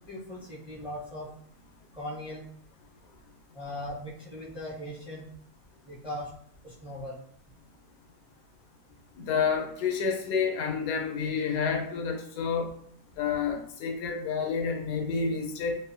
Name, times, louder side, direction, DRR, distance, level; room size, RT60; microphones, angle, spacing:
voice 1, 0.1-1.3 1.9-2.4 3.5-5.2 5.8-6.3 6.6-7.2, left 1 dB, 10° right, -8 dB, 0.3 m, -39 dB
voice 2, 9.3-12.7 13.2-15.8, left 5 dB, 85° left, 3 dB, 1.1 m, -29 dB
2.8 x 2.1 x 2.5 m, 0.63 s
omnidirectional pair, 1.7 m